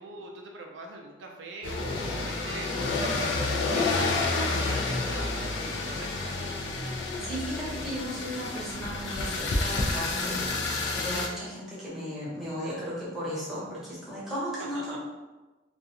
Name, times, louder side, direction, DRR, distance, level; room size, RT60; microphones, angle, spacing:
voice 1, 0.0-4.2 4.5-6.6 14.6-15.0, right 3 dB, 75° right, 1 dB, 0.3 m, -42 dB
sound 1, 1.6-11.3, left 3 dB, 80° left, 0.4 m, -29 dB
voice 2, 7.2-15.0, equal, ahead, -9 dB, 0.9 m, -35 dB
2.3 x 2.3 x 2.7 m, 1.2 s
head